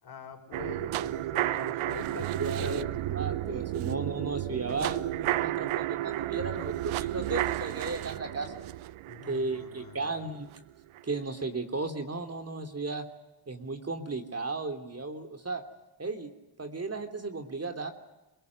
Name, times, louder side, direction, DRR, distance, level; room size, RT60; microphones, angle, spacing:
voice 1, 0.0-3.1 9.1-10.3, left 6 dB, 50° left, 4 dB, 5.8 m, -44 dB
sound 1, 0.5-10.6 11.0-11.1, right 15 dB, 75° right, 0.8 m, -32 dB
voice 2, 2.1-8.6 9.3-10.5 11.0-13.0 13.5-15.6 16.0-16.3 16.6-17.9, right 3 dB, 30° right, 6 dB, 3.1 m, -35 dB
27.0 x 17.5 x 9.6 m, 1.0 s
supercardioid pair, 60°, 49 cm